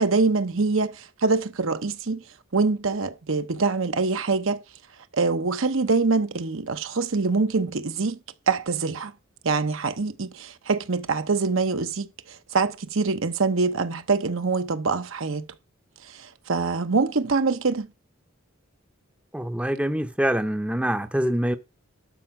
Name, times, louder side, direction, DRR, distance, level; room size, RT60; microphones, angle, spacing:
voice 1, 0.0-2.2 2.5-4.6 5.1-8.2 8.5-9.1 9.4-15.5 16.1-17.9, right 4 dB, 75° right, 0.8 m, -24 dB
voice 2, 19.3-21.6, equal, 5° right, 0.6 m, -25 dB
12.0 x 4.5 x 5.8 m
head